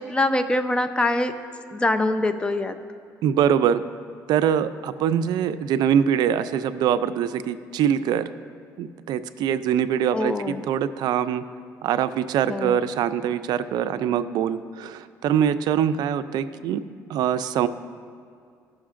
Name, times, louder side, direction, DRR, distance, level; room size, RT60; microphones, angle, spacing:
voice 1, 0.0-1.3 1.7-2.7 10.1-10.6 12.5-12.8, left 2 dB, 15° left, 9 dB, 0.6 m, -24 dB
voice 2, 3.2-3.8 4.3-8.3 8.8-11.4 11.8-16.8 17.1-17.7, right 9 dB, 70° right, 12 dB, 0.4 m, -23 dB
15.0 x 6.3 x 2.5 m, 2.3 s
supercardioid pair, 85°, 7 cm